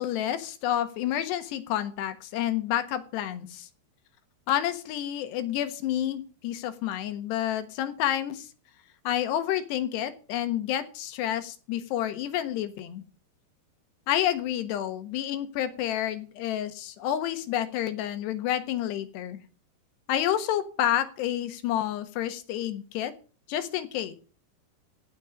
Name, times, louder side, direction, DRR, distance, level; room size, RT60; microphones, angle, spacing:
voice 1, 0.0-3.7 4.5-8.5 9.0-13.0 14.1-19.4 20.1-23.1 23.5-24.1, left 11 dB, 75° left, 11 dB, 3.4 m, -29 dB
16.5 x 6.5 x 6.4 m, 0.37 s
omnidirectional pair, 5.0 m